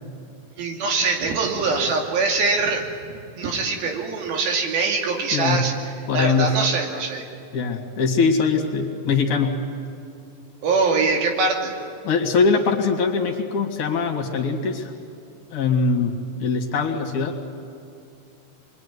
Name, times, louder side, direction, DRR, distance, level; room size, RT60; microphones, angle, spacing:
voice 1, 0.6-5.7 6.1-7.3 10.6-11.8, right 4 dB, 85° right, 2 dB, 4.4 m, -23 dB
voice 2, 5.3-5.7 6.1-6.6 7.5-9.6 12.0-14.9 15.5-16.1 16.4-17.4, left 4 dB, 60° left, 2 dB, 3.5 m, -22 dB
27.0 x 22.0 x 9.6 m, 2.6 s
omnidirectional pair, 4.2 m